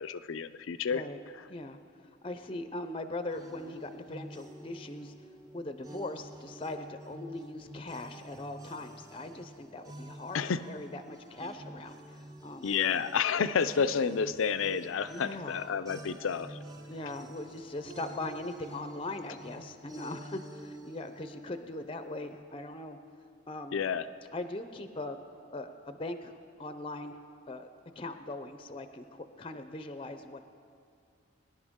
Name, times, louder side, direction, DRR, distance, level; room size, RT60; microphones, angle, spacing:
voice 1, 0.0-1.0 1.3-1.5 10.3-10.6 12.6-16.6 23.7-24.1, left 6 dB, 85° left, 13 dB, 0.5 m, -30 dB
voice 2, 2.2-5.1 5.5-12.7 15.1-15.7 16.9-23.0 23.5-23.9 24.3-25.2 25.5-27.2 27.5-27.7 28.0-30.4, left 2 dB, 25° left, 9 dB, 0.5 m, -40 dB
sound 1, 3.3-22.4, right 1 dB, 20° right, 0.8 m, -49 dB
22.5 x 10.5 x 3.6 m, 2.3 s
head